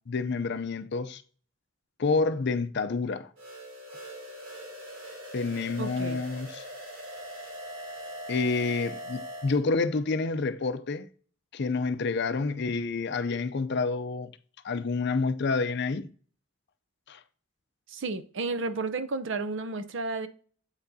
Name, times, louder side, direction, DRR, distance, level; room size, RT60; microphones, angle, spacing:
voice 1, 0.1-1.2 2.0-3.3 5.3-6.6 8.3-11.1 11.5-14.3 14.6-16.1 17.1-17.2, left 4 dB, 55° left, 0.5 m, -28 dB
sound 1, 3.4-9.6, equal, 80° right, 3.1 m, -41 dB
voice 2, 5.8-6.2 17.9-20.3, right 3 dB, 60° right, 0.6 m, -32 dB
8.0 x 5.9 x 2.7 m
head